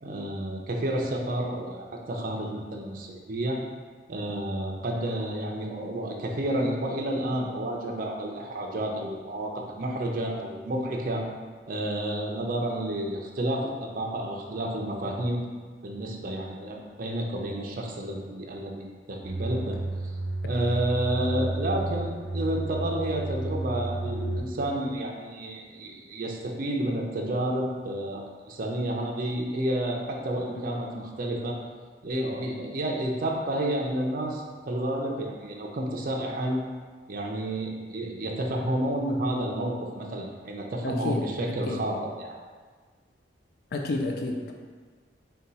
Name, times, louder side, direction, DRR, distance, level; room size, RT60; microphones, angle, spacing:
voice 1, 0.0-3.6 4.1-11.2 11.7-15.5 15.8-19.8 20.4-31.6 32.0-36.6 37.1-42.4, right 1 dB, 50° right, 0 dB, 0.5 m, -30 dB
sound 1, 19.2-24.4, right 2 dB, 25° left, 1.5 m, -31 dB
voice 2, 40.8-41.9 43.7-44.5, left 2 dB, 55° left, 2 dB, 0.3 m, -30 dB
4.2 x 2.3 x 4.0 m, 1.5 s
head